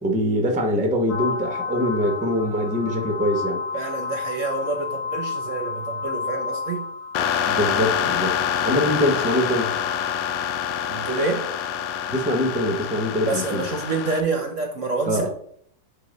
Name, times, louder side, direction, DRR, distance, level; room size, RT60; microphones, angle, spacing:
voice 1, 0.0-3.6 7.4-8.3 8.6-9.7 12.1-13.7 15.1-15.3, equal, 5° right, 3 dB, 0.6 m, -23 dB
sound 1, 1.1-11.3, left 5 dB, 60° left, 2.0 m, -32 dB
voice 2, 3.7-6.9 10.9-11.5 13.2-15.3, right 3 dB, 55° right, 4 dB, 1.0 m, -27 dB
sound 2, 7.1-14.2, left 9 dB, 90° left, 1.3 m, -26 dB
8.1 x 2.9 x 5.1 m, 0.64 s
omnidirectional pair, 1.9 m